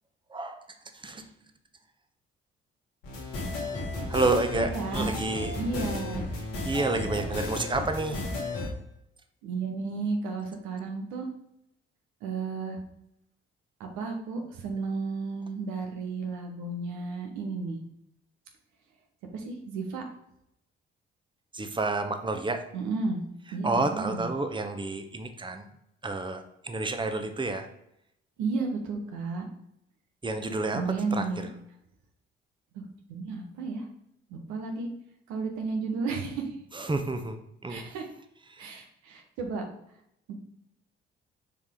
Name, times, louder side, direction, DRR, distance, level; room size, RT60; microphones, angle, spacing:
voice 1, 0.3-0.6 0.9-1.3 4.1-5.5 6.6-8.2 21.5-22.6 23.6-25.6 26.0-27.7 30.2-30.8 31.1-31.3 36.7-37.9 38.5-38.7, right 3 dB, 15° right, 7 dB, 1.0 m, -30 dB
sound 1, 3.0-8.7, left 2 dB, 85° left, 2.0 m, -34 dB
voice 2, 4.7-5.1 5.6-6.2 9.4-11.3 12.2-12.8 13.8-17.8 19.3-20.0 22.7-23.2 23.5-24.3 28.4-29.4 30.7-31.5 32.7-32.8 33.1-33.9 34.3-34.9 35.3-36.6 37.7-38.1 38.6-39.6 40.3-40.4, right 4 dB, 75° right, 3 dB, 1.2 m, -33 dB
6.9 x 4.7 x 3.8 m, 0.78 s
hypercardioid pair, 40°, 30 cm